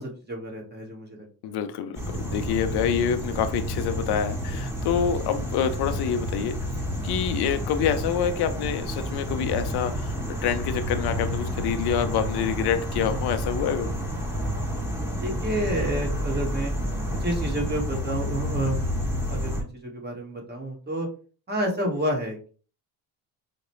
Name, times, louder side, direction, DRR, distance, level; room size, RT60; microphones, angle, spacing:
voice 1, 0.0-1.6 14.9-16.7 17.2-21.1 21.5-22.5, right 1 dB, 25° right, -1 dB, 1.5 m, -30 dB
voice 2, 1.4-6.6 7.0-14.0, left 8 dB, 75° left, 9 dB, 0.6 m, -27 dB
sound 1, 1.9-19.6, equal, 5° right, 1.3 m, -30 dB
4.8 x 2.2 x 3.0 m, 0.39 s
cardioid pair, 90°, 39 cm